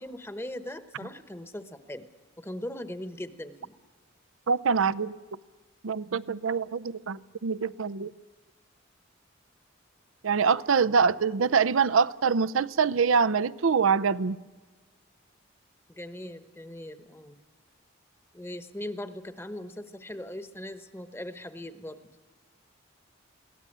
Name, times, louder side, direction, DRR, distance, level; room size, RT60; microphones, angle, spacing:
voice 1, 0.0-2.1 2.4-3.7 15.9-17.4 18.3-22.0, left 1 dB, 10° left, 1.1 m, -39 dB
voice 2, 4.5-5.2 5.8-8.1 10.2-14.4, right 5 dB, 85° right, 0.6 m, -24 dB
22.0 x 17.5 x 8.7 m
head